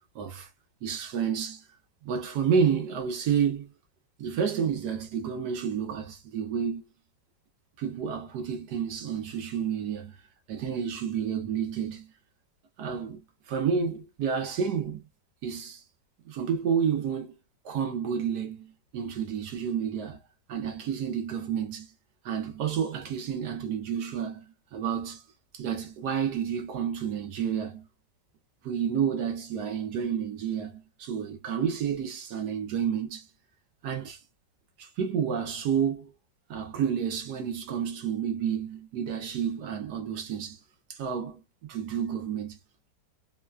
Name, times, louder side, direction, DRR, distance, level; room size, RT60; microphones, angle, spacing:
voice 1, 0.1-0.5 0.8-1.7 2.0-3.7 4.2-6.9 7.8-10.1 10.5-12.1 12.8-15.1 15.4-15.8 16.2-17.3 17.6-20.2 20.5-21.9 22.2-25.2 25.5-27.9 28.6-33.3 33.8-34.2 34.8-36.1 36.5-40.6 40.9-42.6, right 7 dB, 70° right, 1.1 m, -30 dB
3.1 x 2.1 x 2.3 m
omnidirectional pair, 1.9 m